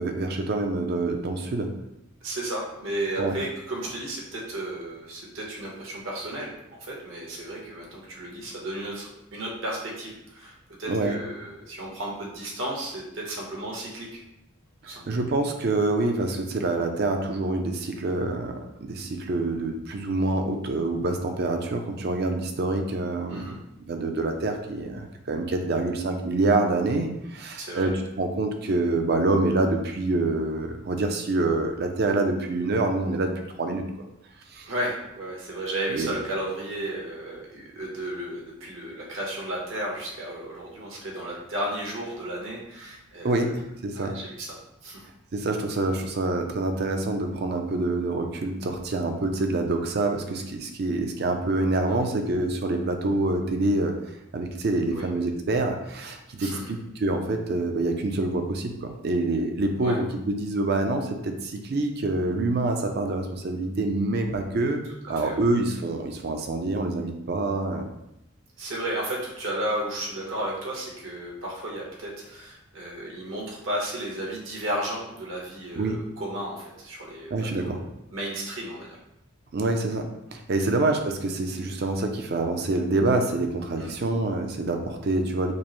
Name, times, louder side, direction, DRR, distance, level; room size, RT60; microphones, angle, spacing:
voice 1, 0.0-1.7 3.2-3.4 10.9-11.2 15.1-18.5 18.8-23.5 23.9-33.3 33.6-33.8 34.5-34.7 35.9-36.1 43.2-44.2 45.3-53.9 54.3-64.8 65.1-67.9 75.7-76.0 77.3-77.8 79.5-85.5, right 2 dB, 50° right, 5 dB, 0.5 m, -26 dB
voice 2, 2.2-14.2 14.8-15.0 23.3-23.6 27.6-27.9 34.7-43.4 43.9-44.6 44.8-45.0 51.9-52.1 54.9-55.1 56.4-56.7 59.8-60.0 65.1-65.4 68.6-77.8 78.1-79.0 80.7-80.8 83.8-83.9, right 1 dB, 70° right, -3 dB, 1.1 m, -33 dB
5.2 x 2.0 x 3.0 m, 0.86 s
head